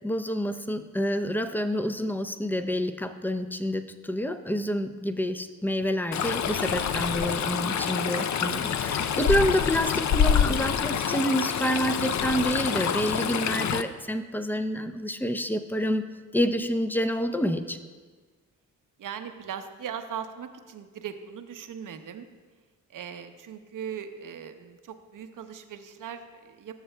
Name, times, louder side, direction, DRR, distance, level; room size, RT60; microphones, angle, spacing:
voice 1, 0.0-16.0 16.3-17.8, equal, 5° left, 9 dB, 0.6 m, -28 dB
Stream, 6.1-13.8, left 8 dB, 50° left, 0.5 m, -26 dB
voice 2, 8.1-8.5 19.0-22.3 22.9-26.7, right 8 dB, 55° right, 8 dB, 0.8 m, -39 dB
13.0 x 7.0 x 2.2 m, 1.4 s
supercardioid pair, 45°, 38 cm